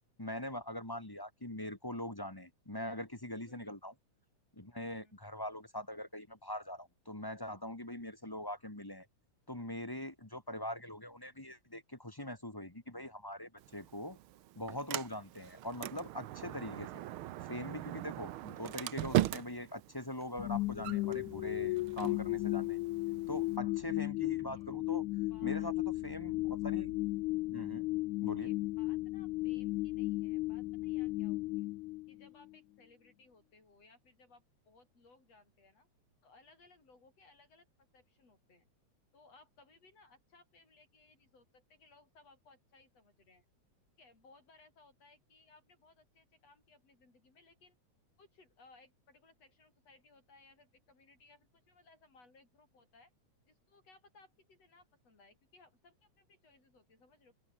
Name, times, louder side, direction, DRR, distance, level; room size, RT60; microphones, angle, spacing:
voice 1, 0.2-3.9 4.5-9.1 9.5-14.2 14.5-17.0 17.4-22.8 23.3-25.1 25.4-25.7 26.0-26.9 27.5-27.9 28.2-28.5, left 1 dB, 10° left, 1.3 m, -42 dB
voice 2, 3.5-3.8 4.9-5.2 24.5-24.7 25.3-25.7 26.0-26.4 28.3-31.7 32.1-35.9 36.2-38.7 39.1-43.5 44.0-47.8 48.2-53.1 53.5-57.3, left 3 dB, 55° left, 8.9 m, -64 dB
Sliding door, 13.6-23.6, right 14 dB, 85° right, 1.1 m, -40 dB
sound 1, 20.4-32.5, left 20 dB, 85° left, 2.0 m, -35 dB
omnidirectional pair, 3.4 m